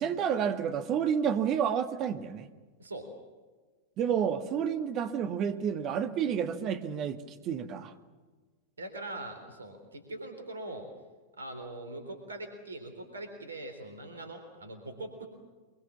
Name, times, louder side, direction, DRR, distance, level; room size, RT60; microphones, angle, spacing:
voice 1, 0.0-2.5 4.0-7.9, right 8 dB, 35° right, 9 dB, 1.9 m, -30 dB
voice 2, 8.8-10.9 11.4-15.3, right 2 dB, 75° right, 6 dB, 3.8 m, -42 dB
24.5 x 23.0 x 7.4 m, 1.3 s
figure-of-eight pair, 90°, 0 cm